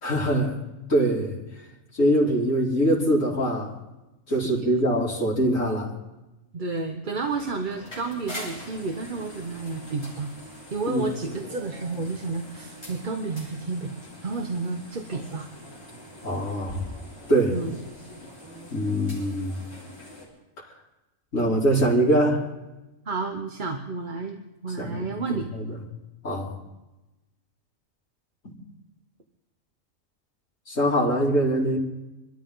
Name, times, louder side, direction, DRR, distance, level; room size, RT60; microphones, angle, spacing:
voice 1, 0.0-0.6 0.9-1.4 2.0-3.7 4.3-5.9 10.9-11.0 16.2-16.8 17.3-17.6 18.7-19.6 21.3-22.4 24.8-25.8 26.2-26.5 30.7-31.8, right 1 dB, 70° left, -6 dB, 3.7 m, -23 dB
voice 2, 4.4-4.9 6.5-10.3 10.7-13.9 14.2-15.5 17.5-17.8 23.1-25.5, right 3 dB, 40° right, 4 dB, 1.1 m, -31 dB
sound 1, 7.1-20.3, equal, 20° left, 6.2 m, -43 dB
27.0 x 13.0 x 3.9 m, 1.0 s
omnidirectional pair, 1.4 m